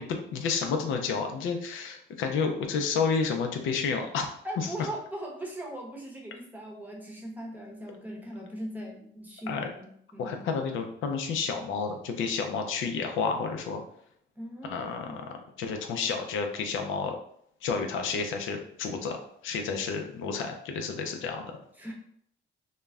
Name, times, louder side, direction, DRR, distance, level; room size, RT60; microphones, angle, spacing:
voice 1, 0.0-4.3 4.6-4.7 9.5-9.7 10.2-13.8 14.6-15.2 15.6-17.2 17.6-21.5, left 5 dB, 80° left, 4 dB, 0.4 m, -30 dB
voice 2, 4.4-10.4 14.4-15.3 16.0-16.1 21.8-21.9, right 1 dB, 10° right, -2 dB, 0.7 m, -40 dB
2.2 x 2.0 x 3.4 m, 0.68 s
cardioid pair, 90°, 20 cm